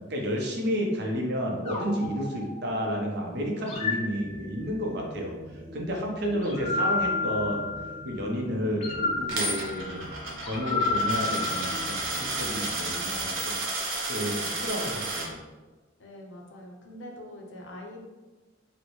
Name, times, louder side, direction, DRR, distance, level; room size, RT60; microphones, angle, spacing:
voice 1, 0.1-7.7 8.0-13.6 13.9-15.4, equal, 55° right, 0 dB, 0.7 m, -31 dB
sound 1, 1.6-3.0 3.6-4.9 6.4-8.1 8.8-12.3, left 3 dB, 35° left, 0.5 m, -31 dB
sound 2, 4.1-13.2, left 1 dB, 10° right, 0.6 m, -44 dB
Coin (dropping), 9.3-15.3, right 2 dB, 85° right, 0.9 m, -32 dB
voice 2, 16.0-18.0, left 1 dB, 70° left, 1 dB, 0.6 m, -43 dB
4.0 x 2.1 x 3.0 m, 1.2 s
head